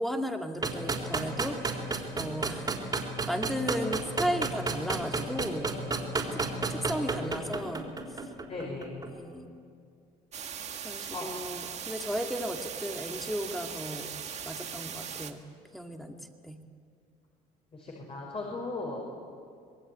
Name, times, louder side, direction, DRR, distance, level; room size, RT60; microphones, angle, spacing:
voice 1, 0.0-5.7 6.3-6.4 6.7-7.9 9.1-9.5 10.8-14.1 14.5-15.4 15.7-16.2 16.4-16.6, equal, ahead, 4 dB, 2.3 m, -35 dB
sound 1, 0.6-9.1, right 4 dB, 25° right, 3.8 m, -31 dB
voice 2, 8.5-9.0 11.1-11.3 17.7-19.0, left 3 dB, 35° left, -1 dB, 5.6 m, -37 dB
sound 2, 10.3-15.3, right 8 dB, 45° right, 1.9 m, -39 dB
26.0 x 20.0 x 9.4 m, 2.3 s
cardioid pair, 105°, 17 cm